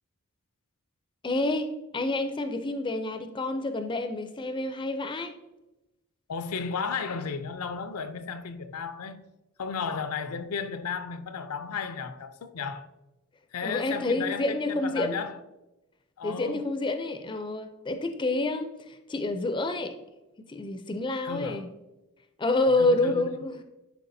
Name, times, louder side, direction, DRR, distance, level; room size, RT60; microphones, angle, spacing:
voice 1, 1.2-5.3 13.6-15.2 16.2-19.9 20.5-21.7 22.4-23.6, left 2 dB, 20° left, 0.4 m, -28 dB
voice 2, 6.3-9.2 9.6-12.9 13.5-15.4 16.2-16.7 21.2-21.7 22.8-23.5, left 5 dB, 75° left, 0.5 m, -34 dB
10.5 x 4.5 x 2.6 m
head